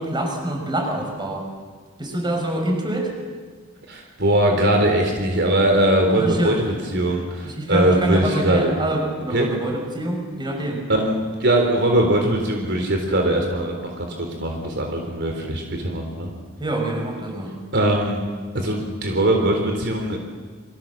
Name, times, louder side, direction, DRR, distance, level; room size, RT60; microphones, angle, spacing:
voice 1, 0.0-1.5 2.0-3.1 6.2-6.8 7.4-10.8 16.6-17.5, right 1 dB, 20° right, 2 dB, 6.1 m, -25 dB
voice 2, 3.9-8.7 9.3-9.5 10.9-16.3 17.7-18.2 18.5-20.2, right 1 dB, 60° right, 2 dB, 3.9 m, -21 dB
29.5 x 24.5 x 7.5 m, 1.5 s
head